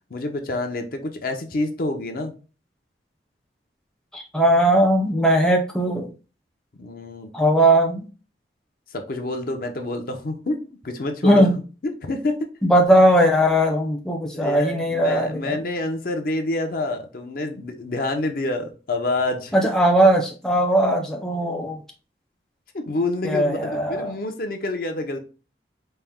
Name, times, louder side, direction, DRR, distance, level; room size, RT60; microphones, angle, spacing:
voice 1, 0.1-2.3 6.8-7.3 8.9-11.5 11.8-12.5 14.3-19.6 22.7-25.2, left 2 dB, 55° left, 5 dB, 0.6 m, -27 dB
voice 2, 4.1-6.1 7.3-8.1 11.2-11.5 12.6-15.6 19.5-21.8 23.2-24.1, right 1 dB, 5° left, 1 dB, 0.5 m, -19 dB
4.3 x 2.1 x 3.5 m, 0.34 s
head